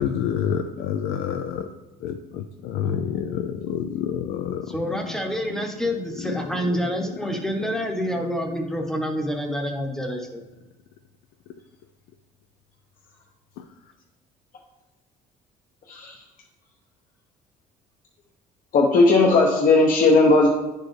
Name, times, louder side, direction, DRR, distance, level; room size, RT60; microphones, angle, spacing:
voice 1, 0.0-1.7 2.0-4.6, left 9 dB, 80° left, 6 dB, 0.4 m, -27 dB
voice 2, 4.7-10.3, equal, 5° left, 2 dB, 0.8 m, -27 dB
voice 3, 18.7-20.5, left 3 dB, 55° left, -1 dB, 0.8 m, -16 dB
9.6 x 4.5 x 3.2 m, 1.1 s
cardioid pair, 110°, 17 cm